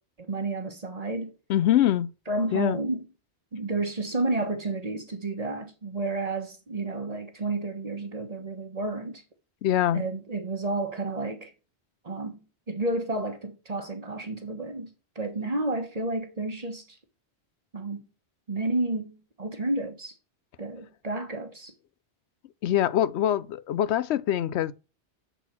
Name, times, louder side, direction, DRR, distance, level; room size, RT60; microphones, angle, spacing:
voice 1, 0.2-1.3 2.3-3.1 3.5-9.2 9.9-11.5 12.0-12.4 12.7-17.0 17.7-18.1 18.5-20.1 20.6-21.7, right 2 dB, 35° right, 1.2 m, -31 dB
voice 2, 1.5-2.1 2.5-2.8 9.6-10.0 22.6-24.7, left 11 dB, 90° left, 0.9 m, -24 dB
8.0 x 4.1 x 4.3 m
omnidirectional pair, 1.1 m